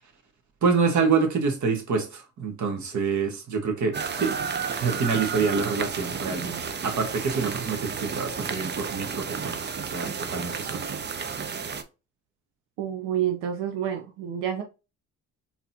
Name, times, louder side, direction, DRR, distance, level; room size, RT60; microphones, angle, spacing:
voice 1, 0.6-4.3 4.8-9.6 9.9-10.9, right 5 dB, 45° right, 1.3 m, -26 dB
sound 1, 3.9-11.8, right 6 dB, 25° right, 0.5 m, -32 dB
voice 2, 12.8-14.6, right 10 dB, 80° right, 0.6 m, -28 dB
3.9 x 2.9 x 2.6 m
hypercardioid pair, 60°, 39 cm